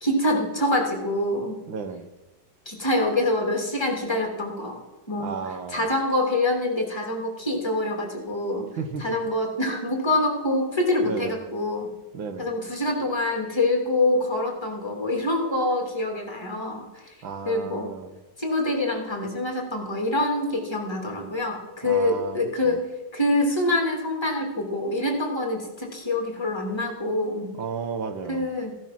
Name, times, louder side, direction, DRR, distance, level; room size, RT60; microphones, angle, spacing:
voice 1, 0.0-1.6 2.7-4.8 5.1-5.3 5.7-8.7 9.0-11.9 12.4-17.1 17.4-17.9 18.4-22.8 23.1-27.5 28.3-28.7, left 1 dB, 15° left, 1 dB, 2.8 m, -25 dB
voice 2, 1.7-2.0 5.2-5.9 8.8-9.2 11.0-11.4 12.1-12.5 17.2-18.2 21.8-22.8 27.6-28.5, right 5 dB, 80° right, 9 dB, 1.9 m, -33 dB
15.5 x 11.0 x 6.0 m, 1.1 s
omnidirectional pair, 2.1 m